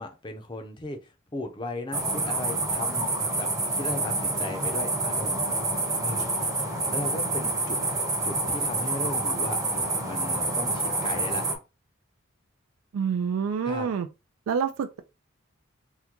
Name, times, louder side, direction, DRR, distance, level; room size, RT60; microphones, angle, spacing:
voice 1, 0.0-5.5 6.0-6.3 6.9-7.8 8.2-11.4 13.6-13.9, left 2 dB, 20° left, 0.5 m, -36 dB
sound 1, 1.9-11.5, right 2 dB, 15° right, 0.7 m, -27 dB
voice 2, 12.9-14.1 14.5-15.0, right 6 dB, 85° right, 0.3 m, -27 dB
3.6 x 2.2 x 2.9 m
head